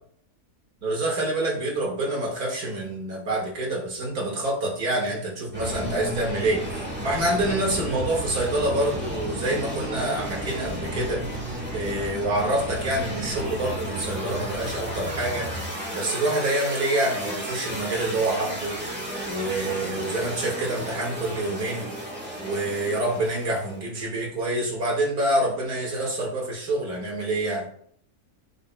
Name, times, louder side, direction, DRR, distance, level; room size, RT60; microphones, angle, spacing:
voice 1, 0.8-6.6 7.0-11.2 11.7-15.5 15.9-18.8 19.2-21.9 22.4-27.7, right 1 dB, 75° right, -2 dB, 2.3 m, -26 dB
sound 1, 5.5-23.8, equal, 5° right, 1.5 m, -33 dB
10.5 x 5.6 x 2.2 m, 0.63 s
omnidirectional pair, 1.6 m